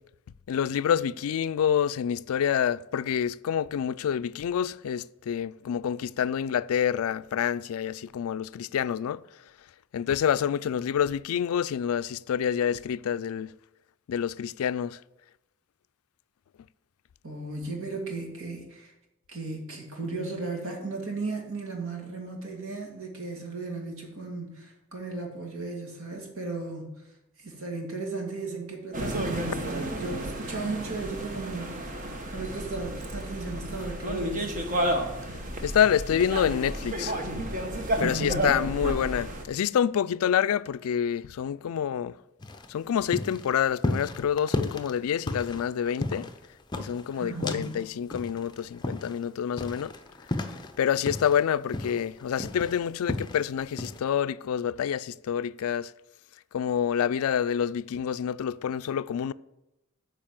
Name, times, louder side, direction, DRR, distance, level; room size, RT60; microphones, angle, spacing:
voice 1, 0.5-9.2 9.9-13.5 14.1-15.0 35.6-37.3 38.0-42.1 42.7-46.3 46.8-49.9 50.8-55.9 56.5-59.3, left 8 dB, 75° left, 0.3 m, -27 dB
voice 2, 17.2-18.9 19.3-27.0 27.4-34.7 38.0-38.6 47.1-47.8, right 3 dB, 65° right, 2.3 m, -35 dB
sound 1, 28.9-39.4, right 1 dB, 35° right, 1.1 m, -32 dB
sound 2, 42.4-47.8 48.1-51.4 51.7-53.4 53.8-54.0, left 2 dB, 20° left, 0.6 m, -33 dB
9.1 x 5.0 x 7.4 m
head